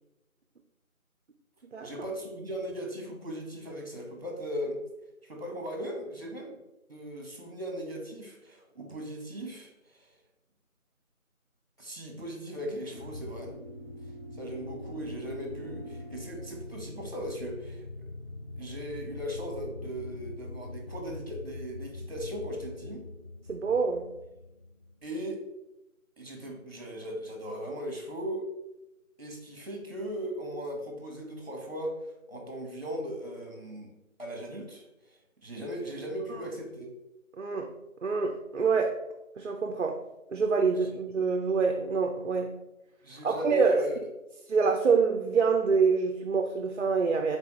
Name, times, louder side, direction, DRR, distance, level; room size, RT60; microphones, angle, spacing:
voice 1, 1.8-4.8 5.2-6.6 6.9-10.1 11.8-13.5 14.3-17.9 18.6-23.0 25.0-25.4 26.2-28.4 29.2-31.9 32.3-33.9 34.2-35.2 35.4-36.9 40.8-41.0 43.0-44.0, equal, 45° right, 1 dB, 1.1 m, -38 dB
sound 1, 12.9-25.1, left 2 dB, 45° left, 1.4 m, -43 dB
voice 2, 23.5-24.1 37.4-37.7 38.0-39.0 39.4-40.0 40.3-42.5 43.2-43.8 44.5-47.4, right 5 dB, 60° right, 3 dB, 0.5 m, -26 dB
4.2 x 3.4 x 3.0 m, 0.92 s
figure-of-eight pair, 170°, 42 cm